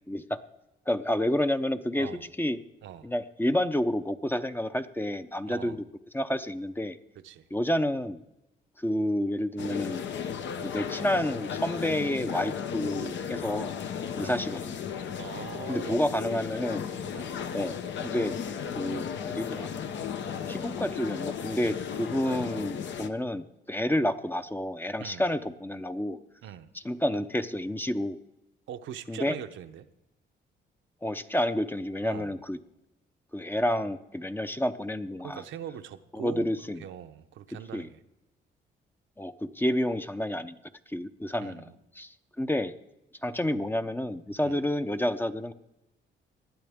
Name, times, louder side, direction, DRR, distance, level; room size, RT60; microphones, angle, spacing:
voice 1, 0.1-0.4 0.9-2.1 2.4-2.6 3.0-5.8 6.1-7.0 7.5-8.2 8.8-10.0 10.6-13.7 14.1-14.8 15.7-16.9 17.5-18.4 18.8-19.7 20.5-26.2 26.8-28.2 29.1-29.4 31.0-32.6 33.3-35.4 36.1-36.8 37.7-37.9 39.2-40.5 40.9-42.7 43.2-45.5, left 1 dB, 10° left, 0.6 m, -29 dB
voice 2, 2.8-3.1 5.5-5.8 7.2-7.5 14.2-14.4 15.2-16.0 17.1-17.4 25.0-25.2 26.4-26.7 28.7-29.9 32.0-32.3 35.2-36.5 36.8-38.0 41.4-41.7 44.4-44.6, right 10 dB, 75° right, 0.8 m, -42 dB
sound 1, 9.6-23.1, left 7 dB, 65° left, 0.9 m, -35 dB
19.5 x 11.5 x 3.6 m
cardioid pair, 90°, 20 cm